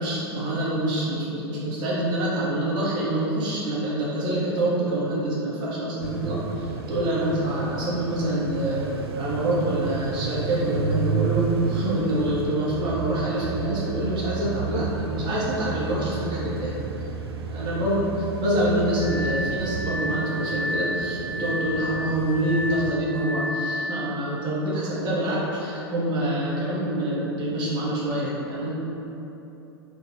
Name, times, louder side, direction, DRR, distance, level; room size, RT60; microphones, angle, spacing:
voice 1, 0.0-8.9 9.2-16.8 17.5-18.0 18.4-28.8, right 1 dB, 35° right, -6 dB, 1.1 m, -26 dB
sound 1, 6.0-22.9, right 5 dB, 65° right, 0.4 m, -32 dB
Glass, 18.9-24.0, left 1 dB, 65° left, 1.3 m, -31 dB
3.9 x 2.6 x 4.4 m, 3.0 s
figure-of-eight pair, 90°, 14 cm